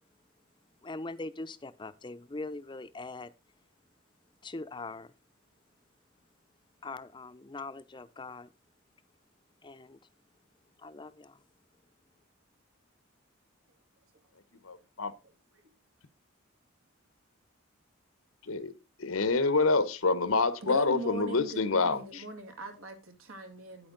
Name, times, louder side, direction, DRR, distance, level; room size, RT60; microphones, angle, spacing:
voice 1, 0.8-3.3 4.4-5.1 6.8-8.5 9.6-10.0 10.8-11.4, left 3 dB, 20° left, 0.5 m, -41 dB
voice 2, 14.6-15.1 18.5-18.7 19.0-22.2, left 3 dB, 85° left, 1.0 m, -27 dB
voice 3, 20.6-23.9, right 2 dB, 85° right, 2.6 m, -40 dB
9.8 x 8.6 x 3.9 m
head